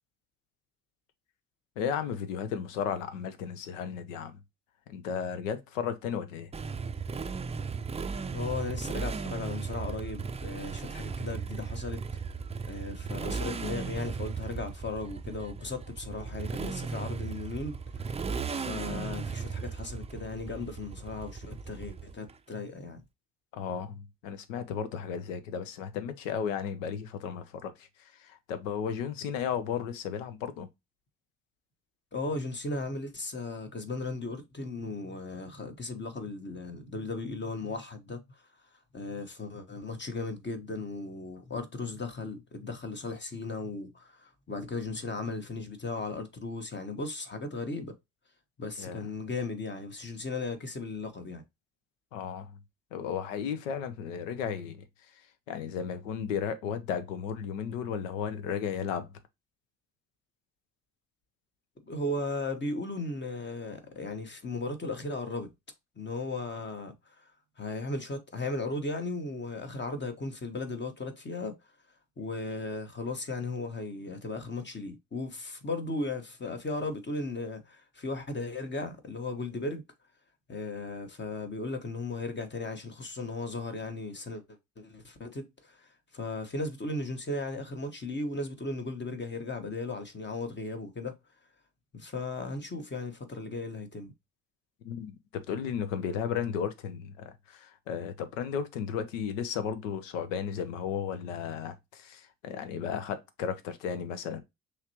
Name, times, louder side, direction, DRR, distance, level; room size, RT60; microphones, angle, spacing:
voice 1, 1.8-4.4 4.9-6.5 23.5-30.7 48.8-49.3 52.1-52.6 52.9-54.8 55.5-59.1 94.8-104.4, left 7 dB, 75° left, 0.8 m, -34 dB
Motorcycle, 6.5-22.3, right 5 dB, 15° right, 0.5 m, -36 dB
voice 2, 8.3-12.0 12.6-17.8 18.5-23.0 32.1-38.2 38.9-47.9 48.6-51.4 61.9-65.5 66.0-66.9 67.6-71.5 72.2-79.8 80.5-84.4 84.8-85.9 86.1-91.1 91.9-94.1, left 3 dB, 30° left, 1.3 m, -36 dB
5.6 x 3.2 x 2.9 m
figure-of-eight pair, 45°, 39 cm